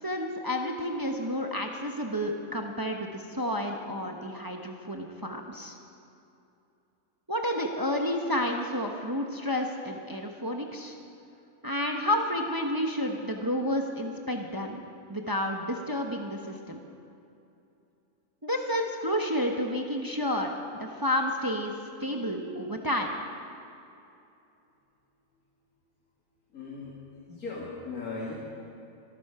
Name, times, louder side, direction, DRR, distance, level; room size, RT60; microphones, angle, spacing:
voice 1, 0.0-5.8 7.3-11.0 11.6-14.8 15.1-16.8 18.4-20.5 20.8-21.7 22.0-23.1, left 1 dB, 15° right, 2 dB, 0.9 m, -30 dB
voice 2, 26.5-26.9 27.3-28.3, left 3 dB, 75° left, -4 dB, 2.6 m, -37 dB
23.5 x 12.5 x 4.9 m, 2.7 s
omnidirectional pair, 1.5 m